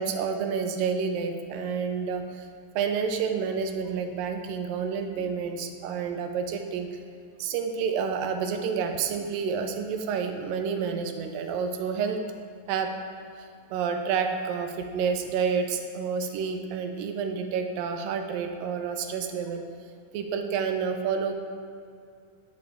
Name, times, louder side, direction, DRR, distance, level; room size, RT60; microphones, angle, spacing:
voice 1, 0.0-2.5 2.8-7.0 7.4-12.2 12.7-12.9 13.4-19.6 20.1-21.3, right 6 dB, 80° right, 5 dB, 2.2 m, -29 dB
10.5 x 7.1 x 3.5 m, 2.3 s
omnidirectional pair, 4.1 m